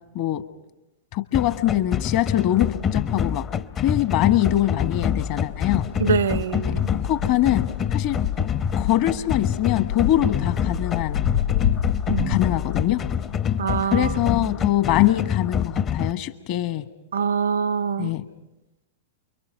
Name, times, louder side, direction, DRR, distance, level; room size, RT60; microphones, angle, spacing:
voice 1, 1.1-3.5 3.8-5.9 7.0-8.2 8.8-11.2 12.3-13.0 13.8-16.9 18.0-18.2, left 14 dB, 50° left, 1.4 m, -23 dB
sound 1, 1.3-16.1, left 8 dB, 30° left, 0.7 m, -26 dB
sound 2, 4.9-13.8, left 10 dB, 85° left, 1.7 m, -30 dB
voice 2, 6.0-6.9 12.1-12.4 13.6-14.5 17.1-18.1, right 6 dB, 70° right, 0.7 m, -25 dB
29.0 x 23.0 x 5.7 m
figure-of-eight pair, 100°, 0 cm